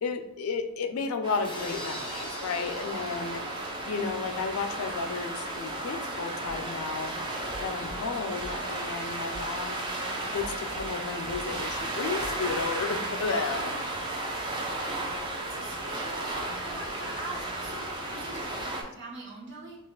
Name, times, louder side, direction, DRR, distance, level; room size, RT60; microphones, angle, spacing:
voice 1, 0.0-3.4 3.9-7.2 7.6-9.8 10.3-13.7, left 4 dB, 80° left, 7 dB, 0.4 m, -33 dB
sound 1, 1.2-18.8, right 2 dB, 20° right, 0.5 m, -34 dB
sound 2, 1.4-5.2, left 1 dB, 25° left, 0.7 m, -44 dB
sound 3, 6.5-13.0, equal, 40° right, 1.4 m, -48 dB
voice 2, 15.4-16.3 16.6-19.8, right 2 dB, 55° right, -4 dB, 1.1 m, -43 dB
5.5 x 2.4 x 2.3 m, 0.89 s
head